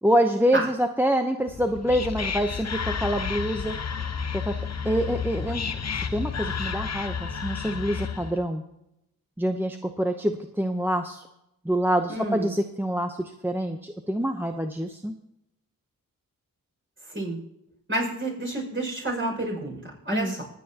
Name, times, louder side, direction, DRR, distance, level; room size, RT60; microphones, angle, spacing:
voice 1, 0.0-3.8 4.3-4.5 4.8-5.6 6.1-8.6 9.4-11.2 11.6-15.1 20.1-20.4, equal, 5° right, 5 dB, 0.8 m, -26 dB
Whispering, 1.5-8.4, left 6 dB, 50° left, 0.9 m, -31 dB
voice 2, 12.1-12.5 17.1-17.4 17.9-20.4, right 1 dB, 35° right, -1 dB, 5.9 m, -29 dB
23.5 x 8.9 x 2.9 m, 0.83 s
cardioid pair, 60°, 34 cm